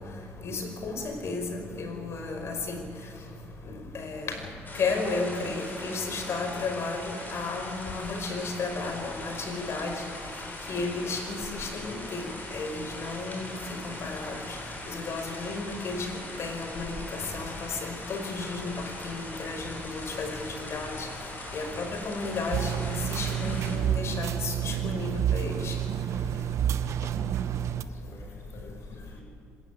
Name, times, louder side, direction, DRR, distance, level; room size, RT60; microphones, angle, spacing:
voice 1, 0.4-2.8 3.7-4.4 4.8-10.1 10.7-12.3 12.5-13.6 13.8-14.4 14.9-16.1 16.4-21.1 21.5-25.8, left 3 dB, 55° left, 5 dB, 5.3 m, -33 dB
voice 2, 1.5-2.0 27.7-29.2, left 1 dB, 75° left, -3 dB, 7.4 m, -50 dB
sound 1, 4.7-23.8, left 1 dB, 35° left, 7.9 m, -41 dB
sound 2, 22.5-27.8, right 10 dB, 65° right, 1.1 m, -29 dB
26.0 x 15.0 x 9.6 m, 2.6 s
cardioid pair, 80°, 5 cm